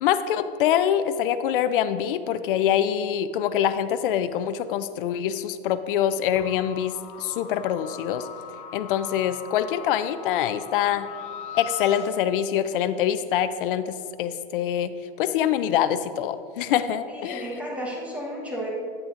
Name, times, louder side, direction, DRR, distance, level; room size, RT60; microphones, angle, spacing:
voice 1, 0.0-8.3 8.7-11.1 11.5-14.9 15.2-17.5, left 10 dB, 65° left, 11 dB, 0.4 m, -25 dB
sound 1, 6.4-12.1, left 7 dB, 25° left, 0.7 m, -40 dB
voice 2, 17.1-18.7, equal, 5° right, -4 dB, 1.1 m, -33 dB
9.7 x 8.6 x 2.5 m, 2.4 s
supercardioid pair, 150°, 29 cm